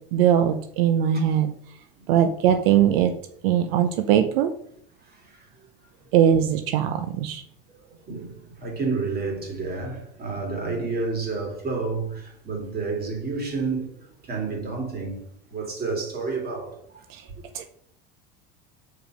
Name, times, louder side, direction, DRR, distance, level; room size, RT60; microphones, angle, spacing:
voice 1, 0.1-1.5 2.1-3.1 3.4-4.5 6.1-7.4 17.1-17.2 17.5-17.7, right 9 dB, 80° right, 0.8 m, -20 dB
voice 2, 5.0-5.5 7.7-15.2 15.5-17.0, right 4 dB, 30° right, 3.0 m, -30 dB
7.2 x 5.1 x 5.0 m
supercardioid pair, 115°, 29 cm